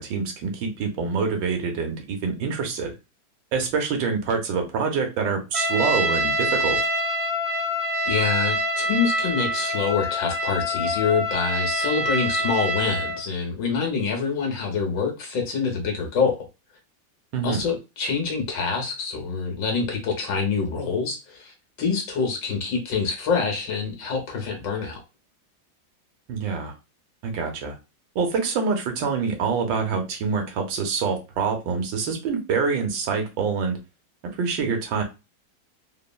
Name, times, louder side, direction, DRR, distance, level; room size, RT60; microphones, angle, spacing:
voice 1, 0.0-2.9 3.5-6.8 17.3-17.7 26.3-26.7 27.2-27.8 28.1-33.8 34.3-35.0, right 5 dB, 75° right, 3 dB, 1.4 m, -26 dB
Trumpet, 5.5-13.2, equal, 30° right, 0.6 m, -25 dB
voice 2, 8.0-16.5 17.4-25.0, left 5 dB, 75° left, 2 dB, 1.5 m, -26 dB
3.6 x 2.0 x 2.2 m, 0.27 s
omnidirectional pair, 2.1 m